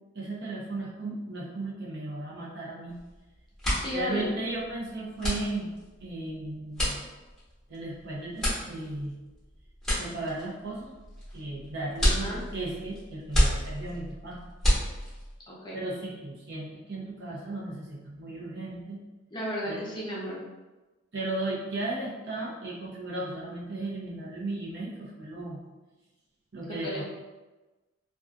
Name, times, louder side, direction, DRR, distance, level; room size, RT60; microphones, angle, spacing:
voice 1, 0.1-3.0 3.9-5.7 6.0-7.0 7.7-9.2 10.0-10.9 11.3-14.4 15.7-19.0 19.6-19.8 21.1-25.6 26.5-27.0, right 2 dB, 55° right, -5 dB, 0.7 m, -35 dB
sound 1, 2.9-3.2 3.4-15.4, equal, ahead, 1.0 m, -30 dB
voice 2, 3.7-4.3 12.0-12.4 15.5-15.8 19.3-20.4 26.6-27.0, equal, 20° left, -6 dB, 0.5 m, -34 dB
2.5 x 2.3 x 2.4 m, 1.2 s
head